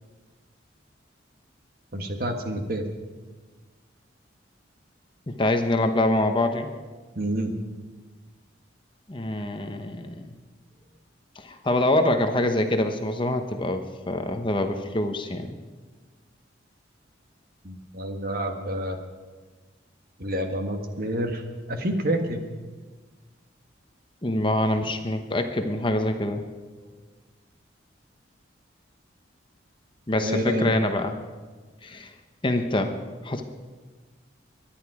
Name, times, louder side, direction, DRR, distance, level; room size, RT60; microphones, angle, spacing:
voice 1, 1.9-2.8 7.1-7.5 17.6-19.0 20.2-21.4 21.7-22.4 30.2-30.8, right 1 dB, 50° right, 5 dB, 1.5 m, -28 dB
voice 2, 5.3-6.7 9.1-10.3 11.4-15.6 24.2-26.4 26.8-26.9 30.1-31.1 31.8-32.1 32.4-33.0 33.2-33.4, left 1 dB, 25° left, 6 dB, 0.9 m, -25 dB
23.0 x 10.5 x 4.9 m, 1.4 s
head